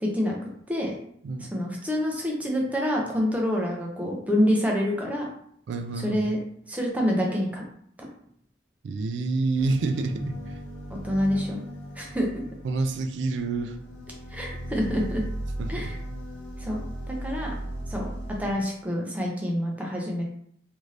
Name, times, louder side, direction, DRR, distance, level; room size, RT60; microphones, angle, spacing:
voice 1, 0.0-0.9 1.4-5.3 6.0-6.4 6.7-7.6 11.0-11.6 12.0-12.3 14.3-15.2 15.7-16.0 16.6-16.8 17.1-17.5 17.9-18.1 18.4-20.2, equal, 10° right, -1 dB, 0.5 m, -27 dB
voice 2, 5.7-6.3 8.8-10.6 12.6-13.8 15.6-15.9, right 3 dB, 70° right, 6 dB, 0.3 m, -28 dB
sound 1, 9.6-18.5, right 1 dB, 75° left, 0.7 m, -37 dB
2.6 x 2.5 x 3.2 m, 0.66 s
head